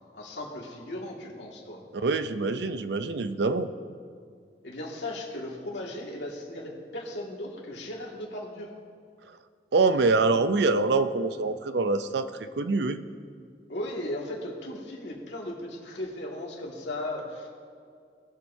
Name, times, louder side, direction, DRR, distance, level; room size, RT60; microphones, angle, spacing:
voice 1, 0.1-1.8 4.6-8.7 13.7-17.6, left 1 dB, 90° left, -3 dB, 2.1 m, -36 dB
voice 2, 1.9-3.7 9.7-13.0, right 3 dB, 75° right, 11 dB, 0.5 m, -25 dB
20.0 x 7.4 x 2.7 m, 2.2 s
head